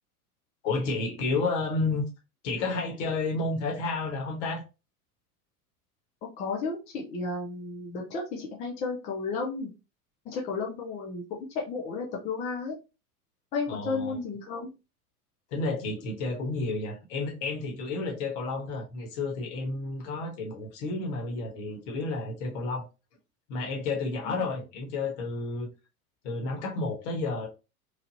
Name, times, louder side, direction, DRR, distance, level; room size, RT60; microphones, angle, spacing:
voice 1, 0.6-2.0 2.4-4.6 13.7-14.2 15.5-22.8 23.5-25.7 26.2-27.5, left 3 dB, 50° left, 1.2 m, -31 dB
voice 2, 6.4-9.7 10.3-11.2 11.5-12.7 13.5-14.7 24.3-24.4, left 4 dB, 15° left, 0.4 m, -33 dB
3.2 x 2.4 x 2.6 m
figure-of-eight pair, 85°, 46 cm